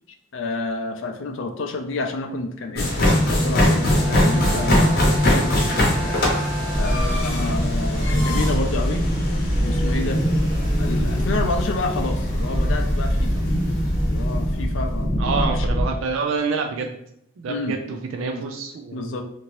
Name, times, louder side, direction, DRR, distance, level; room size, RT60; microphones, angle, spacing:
voice 1, 0.3-6.2 6.8-9.0 9.6-10.2 10.8-13.5 14.0-15.7 17.5-17.8 18.2-18.4 18.9-19.2, left 3 dB, 75° left, 4 dB, 0.4 m, -30 dB
sound 1, 2.7-14.8, left 1 dB, 50° left, 0.8 m, -23 dB
Bowed string instrument, 3.8-7.5, right 4 dB, 30° right, 1.2 m, -34 dB
sound 2, 6.7-15.9, equal, 10° left, 0.9 m, -23 dB
voice 2, 15.2-16.9 17.4-19.2, right 4 dB, 80° right, 3 dB, 0.3 m, -27 dB
2.8 x 2.6 x 3.0 m, 0.76 s
head